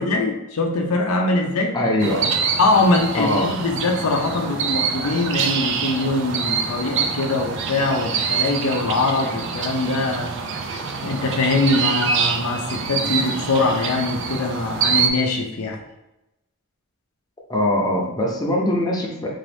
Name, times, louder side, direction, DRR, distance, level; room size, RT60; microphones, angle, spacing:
voice 1, 0.0-1.8 2.6-10.3 11.0-15.8, left 2 dB, 85° left, 3 dB, 0.5 m, -22 dB
voice 2, 1.7-2.3 3.2-3.5 10.7-11.1 17.5-19.3, left 1 dB, 20° left, -3 dB, 0.6 m, -22 dB
sound 1, 2.0-15.1, right 5 dB, 55° right, 0.4 m, -25 dB
3.8 x 2.6 x 3.3 m, 0.93 s
head